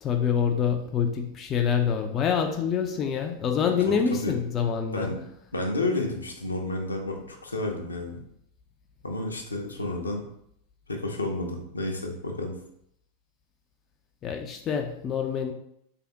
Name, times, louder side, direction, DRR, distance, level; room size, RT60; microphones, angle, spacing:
voice 1, 0.0-5.1 14.2-15.5, left 7 dB, 30° left, 4 dB, 0.4 m, -26 dB
voice 2, 4.9-5.3 5.5-8.2 9.0-10.2 10.9-12.5, left 2 dB, 80° left, 2 dB, 0.6 m, -31 dB
3.4 x 3.4 x 2.9 m, 0.73 s
figure-of-eight pair, 90°, 0 cm